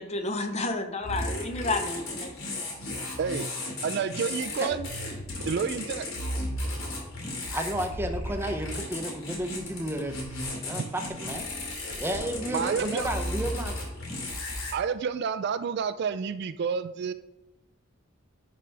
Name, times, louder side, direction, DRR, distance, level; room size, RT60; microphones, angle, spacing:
voice 1, 0.0-2.3, left 2 dB, 30° left, 7 dB, 0.7 m, -31 dB
sound 1, 1.0-14.7, left 1 dB, 75° left, 2.4 m, -35 dB
voice 2, 3.2-3.5 3.8-5.1 5.4-6.1 10.7-10.9 12.5-13.1 14.7-17.1, right 6 dB, 55° right, 11 dB, 0.3 m, -29 dB
voice 3, 7.5-10.2 10.5-11.5 12.0-13.8, right 1 dB, 10° right, 5 dB, 0.6 m, -32 dB
10.5 x 4.9 x 3.4 m, 0.93 s
head